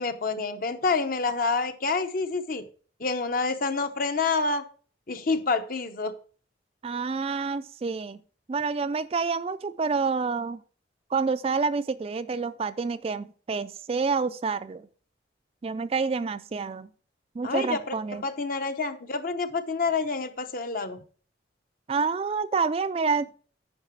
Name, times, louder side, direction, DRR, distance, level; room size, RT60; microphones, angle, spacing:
voice 1, 0.0-2.6 3.0-4.6 5.1-6.1 17.4-17.9 18.2-21.0, left 4 dB, 50° left, 9 dB, 0.8 m, -28 dB
voice 2, 6.8-8.2 8.5-10.6 11.1-14.9 15.6-16.9 17.4-18.2 21.9-23.3, right 4 dB, 30° right, 13 dB, 0.3 m, -28 dB
9.7 x 5.8 x 4.5 m, 0.41 s
head